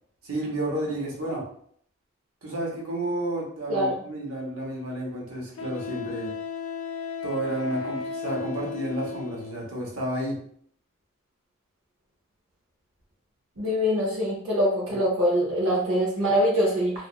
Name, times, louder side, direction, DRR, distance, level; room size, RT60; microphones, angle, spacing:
voice 1, 0.2-1.5 2.4-6.3 7.2-10.4, right 1 dB, 90° right, -2 dB, 0.9 m, -31 dB
Wind instrument woodwind instrument, 4.3-4.4 5.6-9.6, left 6 dB, 80° left, 0.4 m, -35 dB
voice 2, 13.6-16.9, equal, 65° right, -4 dB, 0.7 m, -23 dB
2.8 x 2.4 x 2.4 m, 0.62 s
head